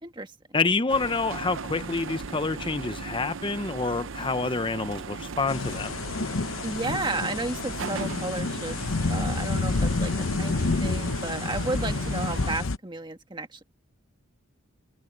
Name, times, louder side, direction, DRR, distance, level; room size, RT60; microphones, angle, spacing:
voice 1, 0.0-0.3 6.6-8.8 9.1-13.6, right 2 dB, 20° right, 1.8 m, -33 dB
voice 2, 0.5-6.0, left 3 dB, 25° left, 0.7 m, -27 dB
sound 1, 0.9-12.5, right 4 dB, 75° right, 0.8 m, -38 dB
sound 2, 5.5-12.8, left 3 dB, 80° left, 0.9 m, -29 dB
sound 3, 6.0-12.5, left 1 dB, 45° left, 5.8 m, -56 dB
head